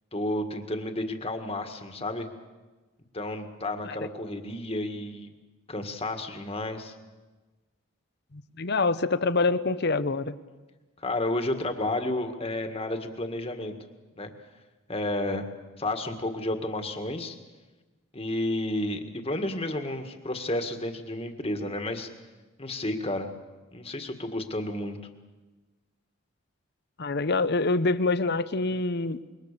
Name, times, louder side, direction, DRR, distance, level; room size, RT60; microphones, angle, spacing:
voice 1, 0.1-2.3 3.1-5.3 5.7-6.9 11.0-13.7 14.2-14.3 14.9-15.5 15.8-17.4 18.1-22.1 22.6-23.3 23.7-25.0, left 1 dB, 25° left, 6 dB, 1.8 m, -31 dB
voice 2, 8.3-10.3 27.0-29.2, left 3 dB, 50° left, 14 dB, 0.9 m, -26 dB
26.5 x 23.0 x 6.8 m, 1.3 s
head